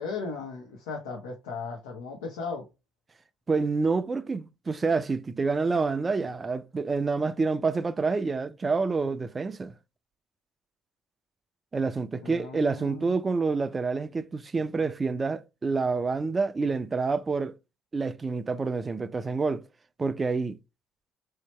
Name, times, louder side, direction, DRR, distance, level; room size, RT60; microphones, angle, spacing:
voice 1, 0.0-2.7 12.2-13.1, left 4 dB, 80° left, 0.7 m, -36 dB
voice 2, 3.5-9.7 11.7-17.6 17.9-19.7 20.0-20.6, right 4 dB, 30° right, 0.4 m, -28 dB
3.2 x 2.8 x 3.1 m
hypercardioid pair, 60°, 0 cm